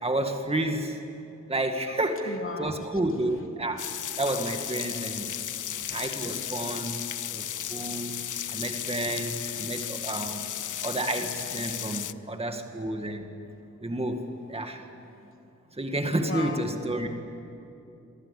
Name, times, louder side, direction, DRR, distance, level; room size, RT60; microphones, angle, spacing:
voice 1, 0.0-1.0 1.5-3.8 4.2-5.3 5.9-7.0 7.3-8.2 8.5-10.5 10.8-13.3 13.8-14.8 15.8-17.1, right 1 dB, 20° right, 5 dB, 2.1 m, -30 dB
voice 2, 2.3-3.0 7.3-7.4 7.8-8.6 16.2-16.6, left 3 dB, 45° left, 2 dB, 3.2 m, -38 dB
sound 1, 3.8-12.1, left 10 dB, 80° left, 0.6 m, -34 dB
29.5 x 23.0 x 8.6 m, 2.8 s
wide cardioid pair, 125°, 30 cm